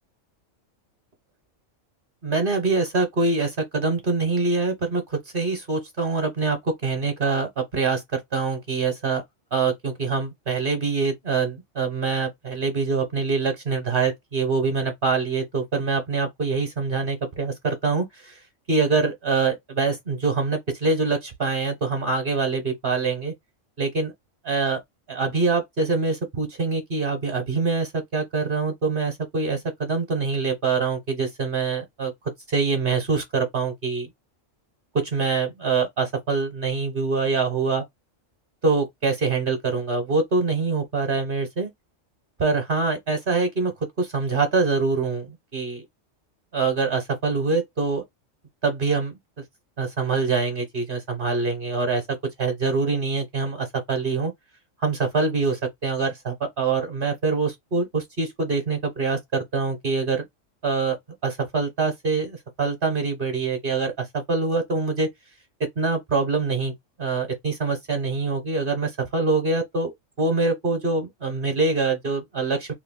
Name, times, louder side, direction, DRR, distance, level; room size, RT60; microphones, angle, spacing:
voice 1, 2.2-9.2 9.5-18.4 18.7-23.3 23.8-24.1 24.4-24.8 25.1-32.1 32.5-34.1 35.0-37.8 38.6-41.7 42.4-43.7 44.0-45.8 46.5-48.0 48.6-49.1 49.8-52.0 52.4-54.3 54.8-60.2 60.6-61.0 61.2-65.1 65.8-66.7 67.0-72.7, right 4 dB, 45° right, 0.9 m, -24 dB
2.9 x 2.3 x 3.5 m
omnidirectional pair, 1.4 m